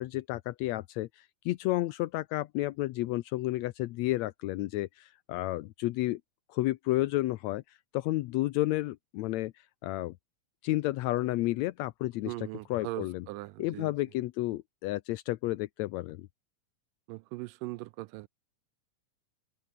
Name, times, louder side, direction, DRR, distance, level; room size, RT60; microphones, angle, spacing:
voice 1, 0.0-6.2 6.5-9.5 9.8-10.1 10.6-12.3 12.7-13.2 13.6-16.3, left 17 dB, 85° left, 1.6 m, -31 dB
voice 2, 12.2-13.9 17.1-18.3, right 20 dB, 90° right, 2.2 m, -40 dB
omnidirectional pair, 3.8 m